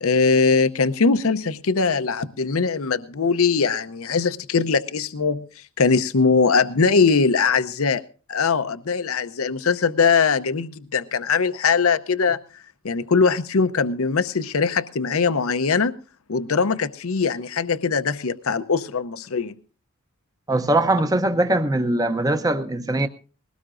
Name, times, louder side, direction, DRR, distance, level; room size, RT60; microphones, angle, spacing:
voice 1, 0.0-5.4 5.8-8.0 8.3-12.4 12.8-15.9 16.3-19.5, left 5 dB, 70° left, 0.7 m, -21 dB
voice 2, 20.5-23.1, right 1 dB, 15° right, 0.7 m, -21 dB
20.5 x 17.5 x 2.5 m
head